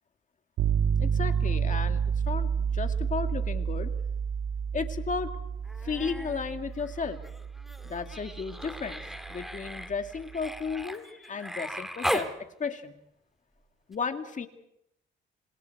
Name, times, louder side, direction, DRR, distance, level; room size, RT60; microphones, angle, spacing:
sound 1, 0.6-10.5, right 7 dB, 90° right, 1.5 m, -30 dB
voice 1, 1.0-3.9 4.7-5.3 5.8-7.2 7.8-9.0 9.3-13.0 13.9-14.5, left 5 dB, 40° left, 7 dB, 2.0 m, -34 dB
Human voice, 5.6-6.4 6.7-12.3 13.9-14.0, equal, ahead, 2.2 m, -37 dB
27.0 x 27.0 x 4.7 m, 0.80 s
cardioid pair, 90°, 20 cm